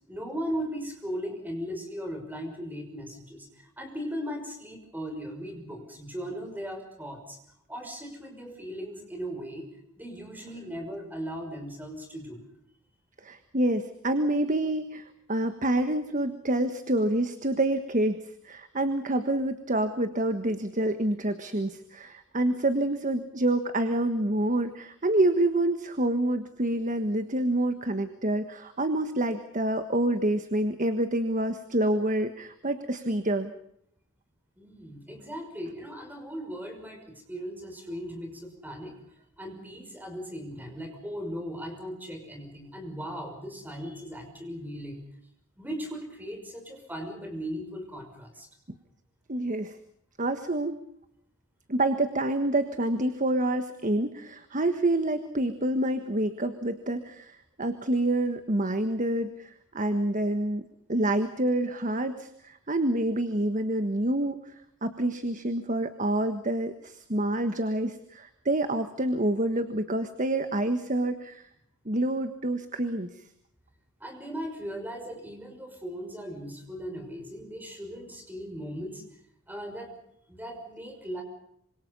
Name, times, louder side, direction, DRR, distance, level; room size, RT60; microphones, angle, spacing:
voice 1, 0.1-7.4 7.7-9.7 10.0-12.4 34.6-38.9 39.4-45.0 45.6-48.5 74.0-79.0 79.5-79.9 80.3-81.2, equal, 10° right, 4 dB, 5.9 m, -38 dB
voice 2, 13.2-33.5 49.3-49.8 50.2-50.8 51.7-60.6 60.9-64.4 64.8-71.4 71.8-73.2, right 1 dB, 35° right, 9 dB, 1.5 m, -27 dB
26.5 x 26.0 x 5.5 m, 0.73 s
head